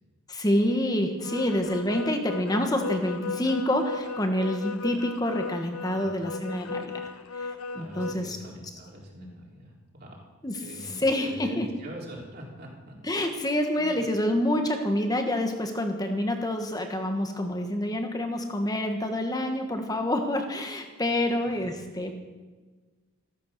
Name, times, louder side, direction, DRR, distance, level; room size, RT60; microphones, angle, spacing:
voice 1, 0.3-7.0 7.3-8.4 10.4-10.6 11.0-11.7 13.0-22.2, left 1 dB, 15° left, 5 dB, 1.4 m, -27 dB
sound 1, 1.2-8.1, left 4 dB, 80° left, 0.9 m, -36 dB
voice 2, 7.7-10.3 10.6-13.0 13.7-14.0 21.2-21.6, right 1 dB, 45° right, -2 dB, 3.7 m, -43 dB
14.5 x 14.0 x 6.7 m, 1.3 s
head